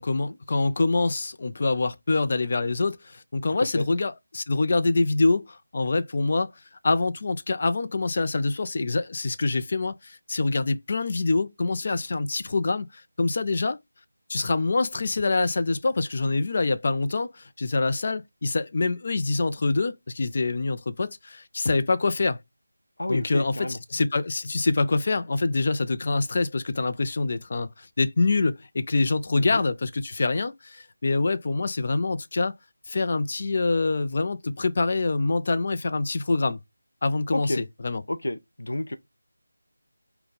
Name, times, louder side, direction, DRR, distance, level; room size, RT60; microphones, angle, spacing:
voice 1, 0.0-6.5 6.8-13.8 14.3-22.4 23.1-32.5 32.9-36.6 37.0-38.0, left 3 dB, 40° left, 0.5 m, -25 dB
voice 2, 23.0-23.8 29.3-29.6 37.3-37.6 38.1-39.0, left 1 dB, 80° left, 0.7 m, -30 dB
5.1 x 2.3 x 3.9 m
figure-of-eight pair, 170°, 0 cm